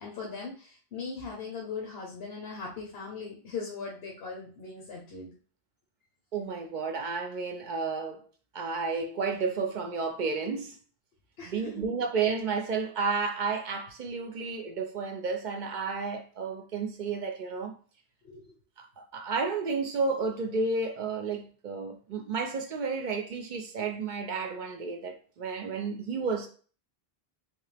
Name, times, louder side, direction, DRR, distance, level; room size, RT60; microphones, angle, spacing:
voice 1, 0.0-5.3 11.4-11.8 18.2-18.6, left 4 dB, 75° left, 1.1 m, -39 dB
voice 2, 6.3-8.3 8.5-10.8 11.5-17.7 18.8-26.5, right 4 dB, 55° right, 0.6 m, -32 dB
3.4 x 2.8 x 3.3 m
omnidirectional pair, 1.0 m